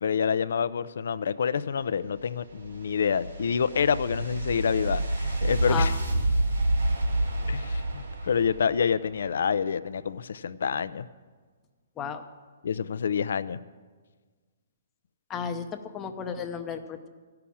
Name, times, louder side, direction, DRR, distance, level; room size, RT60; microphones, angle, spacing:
voice 1, 0.0-5.9 7.5-11.1 12.6-13.6, left 7 dB, 70° left, 16 dB, 0.4 m, -27 dB
sound 1, 2.1-9.3, right 1 dB, 90° right, 3.7 m, -28 dB
voice 2, 15.3-17.1, left 7 dB, 15° left, 6 dB, 0.6 m, -33 dB
14.0 x 5.8 x 8.5 m, 1.4 s
hypercardioid pair, 165°, 0 cm